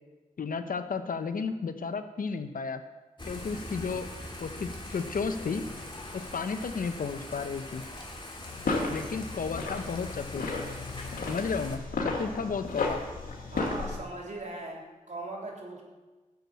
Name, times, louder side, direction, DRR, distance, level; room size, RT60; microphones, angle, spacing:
voice 1, 0.4-2.8 3.3-4.1 4.4-5.6 6.1-7.8 8.9-10.5 11.3-13.0, left 5 dB, 70° left, 9 dB, 0.9 m, -33 dB
Thunder / Rain, 3.2-11.8, left 1 dB, 35° left, 2.8 m, -42 dB
sound 1, 8.5-14.0, left 3 dB, 90° left, 2.1 m, -34 dB
voice 2, 13.5-15.9, right 2 dB, 55° right, -2 dB, 3.5 m, -40 dB
11.5 x 7.2 x 8.5 m, 1.2 s
cardioid pair, 50°, 15 cm